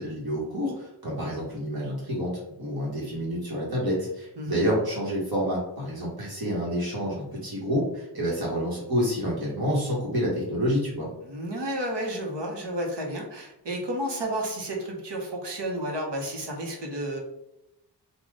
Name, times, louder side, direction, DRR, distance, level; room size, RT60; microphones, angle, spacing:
voice 1, 0.0-2.3 2.6-11.1, equal, 60° right, -5 dB, 1.6 m, -28 dB
voice 2, 11.2-17.2, right 1 dB, 75° right, 0 dB, 1.2 m, -31 dB
4.1 x 2.5 x 4.8 m, 0.88 s
wide cardioid pair, 95°, 42 cm